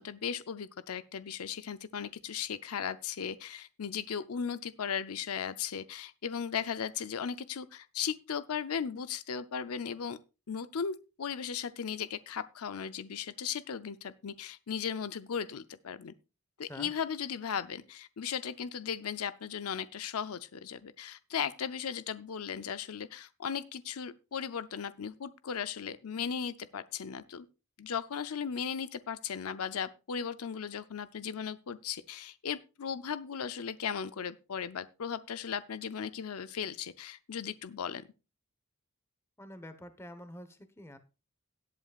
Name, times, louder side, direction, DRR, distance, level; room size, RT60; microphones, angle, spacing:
voice 1, 0.0-10.2 10.5-16.1 16.6-27.5 27.8-38.0, left 7 dB, 85° left, 0.6 m, -37 dB
voice 2, 39.4-41.0, left 1 dB, 10° left, 1.1 m, -47 dB
18.0 x 8.3 x 2.4 m
head